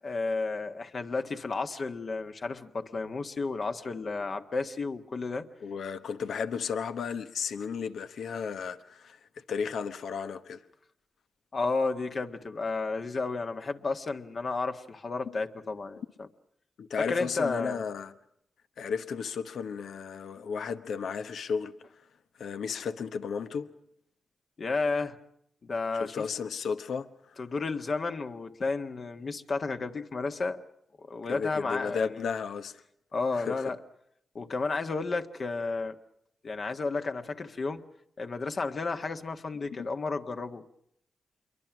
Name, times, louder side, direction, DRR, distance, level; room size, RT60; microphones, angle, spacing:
voice 1, 0.0-5.5 11.5-16.3 17.0-17.8 24.6-25.2 25.6-26.3 27.4-30.6 31.1-32.3 33.1-33.8 34.3-36.0 36.4-37.9 38.2-40.6, left 3 dB, 55° left, 1.7 m, -32 dB
voice 2, 5.6-9.2 9.5-10.6 16.8-18.1 18.8-21.7 22.4-23.7 26.0-27.4 31.3-32.8 33.3-33.7, left 6 dB, 80° left, 1.1 m, -34 dB
27.0 x 23.0 x 6.2 m
supercardioid pair, 50°, 0 cm